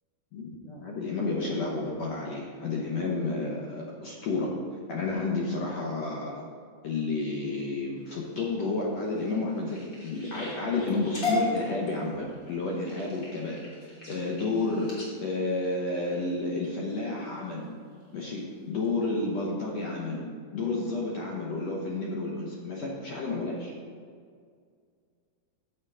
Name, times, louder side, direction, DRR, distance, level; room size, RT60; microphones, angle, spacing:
voice 1, 0.3-4.5 4.9-6.4 6.8-17.7 18.1-20.2 20.5-23.7, left 3 dB, 70° left, -3 dB, 1.6 m, -31 dB
sound 1, 8.0-16.7 17.2-17.6 18.0-18.4 18.8-18.9 19.2-19.3, left 2 dB, 30° left, 2.1 m, -37 dB
7.8 x 7.4 x 4.8 m, 2.1 s
omnidirectional pair, 4.3 m